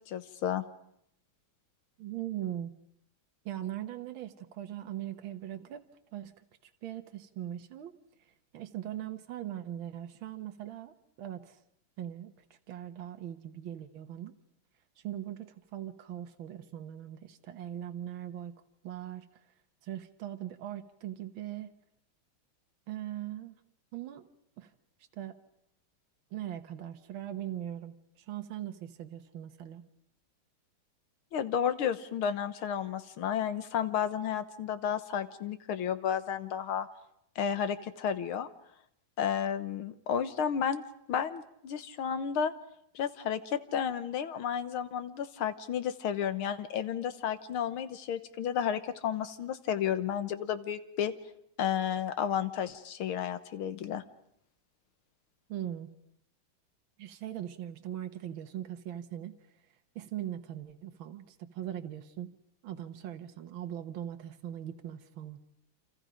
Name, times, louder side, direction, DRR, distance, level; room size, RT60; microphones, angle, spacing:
voice 1, 0.1-0.6 31.3-36.9 37.4-38.5 39.2-42.5 43.0-51.1 51.6-54.0, left 8 dB, 85° left, 11 dB, 2.0 m, -32 dB
voice 2, 2.0-2.7 3.5-5.8 6.1-6.4 6.8-7.9 8.5-11.6 12.0-12.3 12.7-14.4 15.0-18.6 18.8-19.3 19.8-21.7 22.9-23.6 23.9-24.2 24.6-24.7 25.1-25.4 26.3-29.8 55.5-55.9 57.0-59.4 60.0-62.3 62.6-65.4, right 11 dB, 75° right, 6 dB, 1.9 m, -40 dB
29.0 x 27.0 x 5.2 m, 0.74 s
omnidirectional pair, 2.2 m